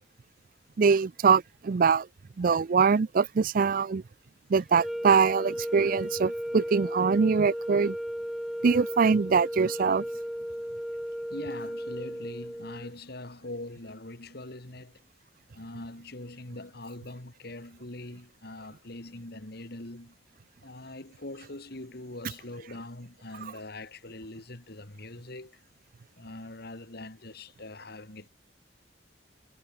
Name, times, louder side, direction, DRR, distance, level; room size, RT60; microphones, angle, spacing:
voice 1, 0.8-2.1 2.4-4.0 4.5-8.0 8.6-10.0, right 5 dB, 50° right, 0.4 m, -23 dB
sound 1, 4.7-12.9, equal, ahead, 0.6 m, -35 dB
voice 2, 11.3-15.0 15.5-20.2 20.6-25.6 26.2-28.3, left 2 dB, 55° left, 2.5 m, -42 dB
head